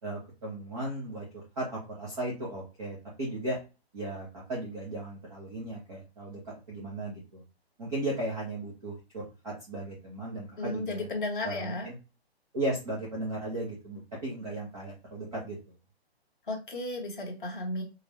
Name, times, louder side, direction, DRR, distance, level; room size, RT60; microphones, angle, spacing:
voice 1, 0.0-3.6 3.9-7.4 7.8-11.1 11.4-12.0 12.5-15.7, right 1 dB, 5° right, -5 dB, 0.5 m, -36 dB
voice 2, 10.6-11.9 16.5-17.8, left 2 dB, 50° left, 1 dB, 1.5 m, -34 dB
5.4 x 2.0 x 3.1 m, 0.31 s
hypercardioid pair, 180°, 32 cm